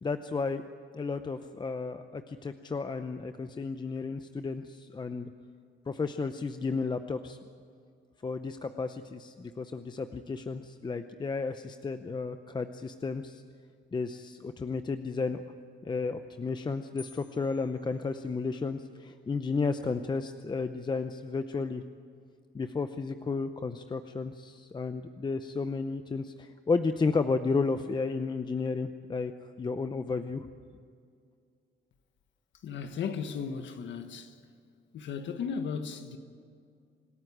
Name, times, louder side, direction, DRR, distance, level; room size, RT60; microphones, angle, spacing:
voice 1, 0.0-0.6 0.9-5.3 5.9-7.4 8.2-13.4 13.9-15.5 15.8-21.8 22.5-29.3 29.6-30.5, left 4 dB, 25° left, 0.7 m, -33 dB
sound 1, 17.0-18.8, left 4 dB, 10° right, 3.1 m, -55 dB
voice 2, 32.6-34.3 34.9-36.2, left 6 dB, 70° left, 1.5 m, -35 dB
26.0 x 14.0 x 9.9 m
cardioid pair, 135°, 20 cm